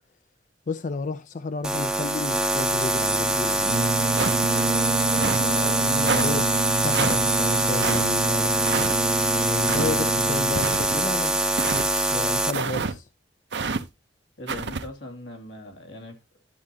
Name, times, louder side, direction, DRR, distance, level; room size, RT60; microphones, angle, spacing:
voice 1, 0.7-3.7 5.5-8.5 9.3-11.4 11.7-13.1, left 3 dB, 45° left, 0.4 m, -32 dB
sound 1, 1.6-12.5, right 1 dB, 5° right, 0.7 m, -24 dB
Brass instrument, 3.6-10.8, right 3 dB, 40° right, 0.6 m, -29 dB
sound 2, 4.2-4.6 5.2-5.5 6.1-6.3 6.9-7.2 7.8-8.0 8.7-8.9 9.6-10.0 10.6-11.0 11.6-11.9 12.5-12.9 13.5-13.8 14.5-14.8, right 4 dB, 70° right, 0.8 m, -28 dB
voice 2, 5.4-5.9 14.4-16.2, left 1 dB, 80° left, 2.5 m, -39 dB
12.0 x 7.5 x 2.8 m
head